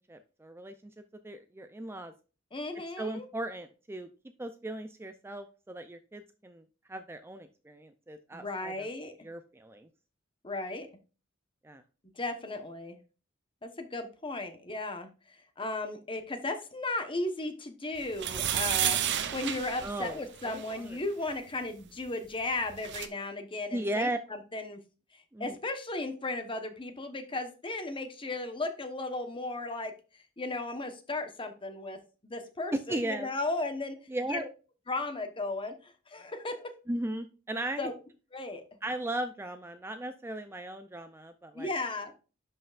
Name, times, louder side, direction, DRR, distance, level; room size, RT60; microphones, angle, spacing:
voice 1, 0.1-0.9 1.2-2.1 3.0-4.1 4.4-8.9 9.2-9.9 11.6-11.8 19.8-21.0 23.7-24.2 25.3-25.5 32.7-33.3 34.1-34.5 36.9-37.9 38.8-41.7, right 1 dB, 10° right, 9 dB, 0.4 m, -37 dB
voice 2, 2.5-3.3 8.3-9.1 10.4-10.9 12.2-13.0 13.6-15.1 15.6-24.8 25.4-29.9 30.4-32.0 32.2-34.0 34.3-34.5 34.9-36.7 37.8-37.9 38.3-38.6 41.5-42.2, left 2 dB, 25° left, 7 dB, 1.1 m, -35 dB
sound 1, 18.1-20.7 22.4-22.5 22.7-23.1, right 10 dB, 60° right, 0.7 m, -31 dB
11.0 x 5.5 x 2.5 m, 0.34 s
head